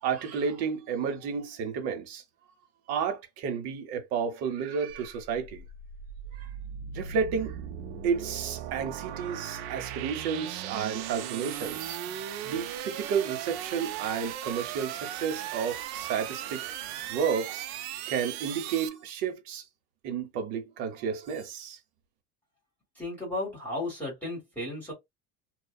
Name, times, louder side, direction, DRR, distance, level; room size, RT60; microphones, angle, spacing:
voice 1, 0.0-2.2 2.9-5.6 6.3-6.5 6.9-7.6 8.0-12.0 12.4-16.6 17.1-17.7 18.1-19.6 20.0-21.8, right 6 dB, 50° right, 0.8 m, -31 dB
sound 1, 4.9-18.9, right 10 dB, 70° right, 0.5 m, -38 dB
voice 2, 22.9-24.9, left 2 dB, 5° left, 1.4 m, -34 dB
2.6 x 2.3 x 2.2 m
cardioid pair, 170°, 34 cm